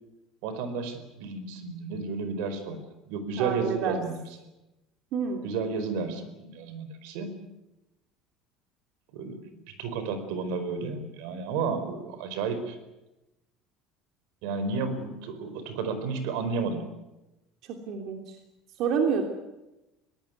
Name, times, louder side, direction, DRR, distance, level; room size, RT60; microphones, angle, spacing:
voice 1, 0.4-2.8 3.1-4.2 5.4-7.4 9.1-12.8 14.4-16.9, right 4 dB, 80° right, 10 dB, 4.7 m, -32 dB
voice 2, 3.4-4.0 5.1-5.4 17.9-18.2 18.8-19.2, right 6 dB, 50° right, 4 dB, 3.0 m, -27 dB
23.0 x 18.5 x 9.5 m, 0.98 s
cardioid pair, 160°, 0 cm